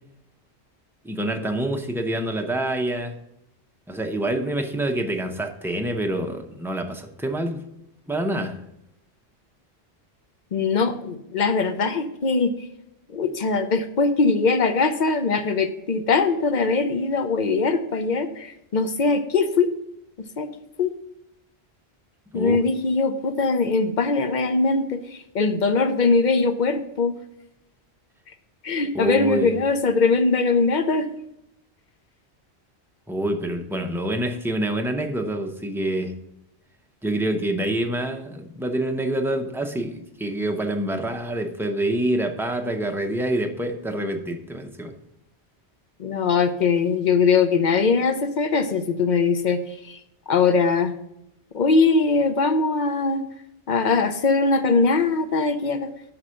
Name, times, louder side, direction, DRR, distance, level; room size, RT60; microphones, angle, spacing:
voice 1, 1.0-3.2 3.9-7.6 8.1-8.6 22.3-22.6 28.9-29.5 33.1-36.1 37.0-44.9, right 1 dB, 5° right, 3 dB, 0.5 m, -26 dB
voice 2, 10.5-12.5 13.1-19.7 20.4-20.5 20.8-20.9 22.3-25.0 25.3-27.1 28.6-31.1 46.0-49.6 49.9-50.0 50.3-50.9 51.5-53.2 53.7-55.9, left 4 dB, 50° left, 8 dB, 0.7 m, -21 dB
6.0 x 5.5 x 6.3 m, 0.81 s
omnidirectional pair, 1.1 m